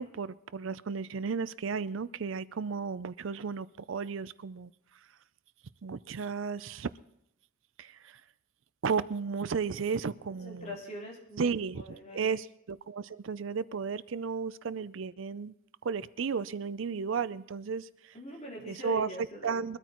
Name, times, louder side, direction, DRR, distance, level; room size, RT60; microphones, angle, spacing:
voice 1, 0.0-4.7 5.8-6.9 7.8-8.2 8.8-10.8 11.4-11.8 12.1-15.5 15.8-17.9 18.7-19.1 19.4-19.8, right 5 dB, 75° right, 0.5 m, -33 dB
voice 2, 10.4-12.4 18.1-19.7, equal, 35° left, 4.2 m, -43 dB
23.0 x 13.5 x 3.1 m
head